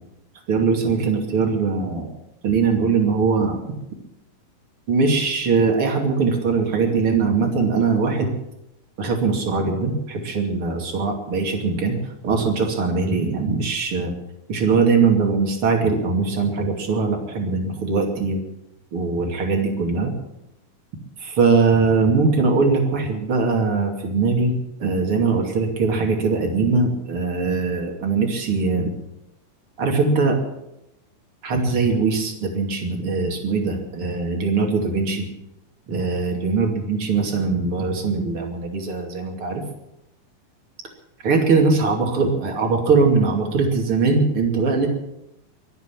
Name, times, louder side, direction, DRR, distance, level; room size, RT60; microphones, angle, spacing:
voice 1, 0.5-2.1 2.4-3.6 4.9-8.3 9.0-12.0 12.2-14.1 14.5-18.4 18.9-20.1 21.2-28.9 29.8-30.4 31.4-35.3 35.9-39.6 41.2-44.9, right 4 dB, 40° right, 2 dB, 3.2 m, -21 dB
23.5 x 8.2 x 7.4 m, 0.87 s
omnidirectional pair, 4.1 m